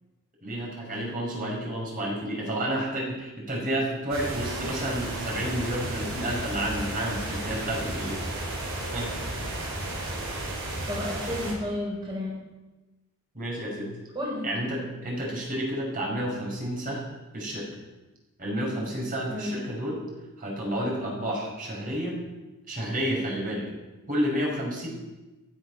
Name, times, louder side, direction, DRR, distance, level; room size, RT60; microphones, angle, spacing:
voice 1, 0.4-8.2 8.9-9.2 13.3-13.9 14.4-17.1 17.3-17.7 18.4-20.0 20.4-22.2 22.7-23.7 24.1-24.9, right 1 dB, 40° right, -2 dB, 5.3 m, -30 dB
sound 1, 4.1-11.5, right 1 dB, 60° right, 5.1 m, -33 dB
voice 2, 10.9-12.4 14.1-14.4 19.3-19.5, left 1 dB, 20° right, -6 dB, 4.3 m, -31 dB
15.5 x 12.0 x 6.2 m, 1.1 s
head